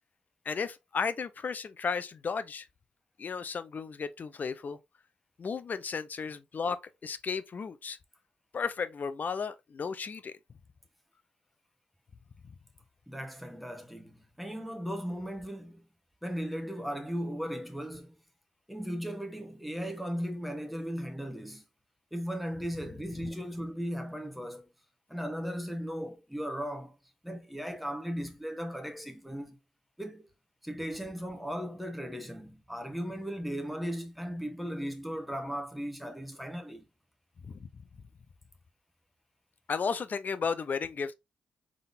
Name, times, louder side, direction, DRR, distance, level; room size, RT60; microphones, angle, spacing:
voice 1, 0.5-2.7 3.2-4.8 5.4-8.0 8.5-10.3 23.2-23.3 37.4-37.7 39.7-41.1, left 5 dB, 50° left, 0.6 m, -34 dB
voice 2, 13.1-15.8 16.2-18.1 18.7-21.6 22.1-24.7 25.1-27.0 27.2-29.6 30.0-30.3 30.6-36.9, equal, ahead, 1.2 m, -37 dB
3.8 x 3.6 x 2.6 m
hypercardioid pair, 45°, 4 cm